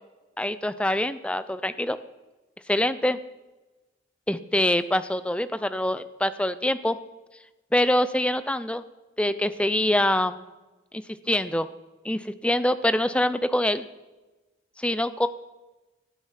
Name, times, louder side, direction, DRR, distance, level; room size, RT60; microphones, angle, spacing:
voice 1, 0.4-2.0 2.7-3.2 4.3-7.0 7.7-8.8 9.2-10.4 10.9-11.0 11.3-11.7 12.0-13.8 14.8-15.3, left 1 dB, 5° left, 13 dB, 0.4 m, -24 dB
18.0 x 9.2 x 5.8 m, 1.2 s
head